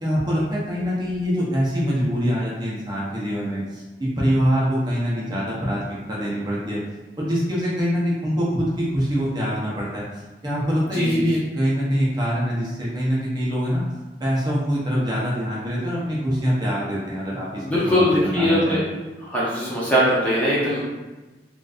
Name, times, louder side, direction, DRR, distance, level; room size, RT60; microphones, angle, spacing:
voice 1, 0.0-6.8 7.2-10.0 10.4-13.8 14.2-18.8, equal, 25° right, -6 dB, 0.7 m, -24 dB
voice 2, 10.9-11.2 17.6-18.8 19.2-20.8, equal, 10° left, -8 dB, 0.6 m, -21 dB
3.8 x 2.5 x 2.4 m, 1.2 s
head